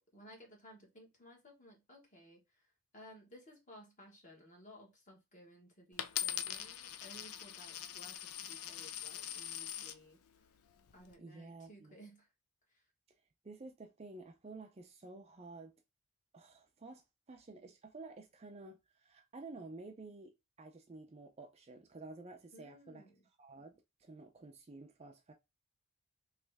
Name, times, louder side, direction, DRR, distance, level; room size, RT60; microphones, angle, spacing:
voice 1, 0.0-2.7 2.9-10.2 10.9-12.3 12.7-12.8 22.5-23.3, equal, 35° left, 1.4 m, -58 dB
Coin (dropping), 6.0-10.0 10.7-11.1, left 10 dB, 75° left, 0.5 m, -42 dB
voice 2, 11.2-12.0 13.4-15.8 16.3-23.0 23.4-25.3, right 3 dB, 30° right, 0.4 m, -52 dB
3.2 x 3.1 x 3.4 m
head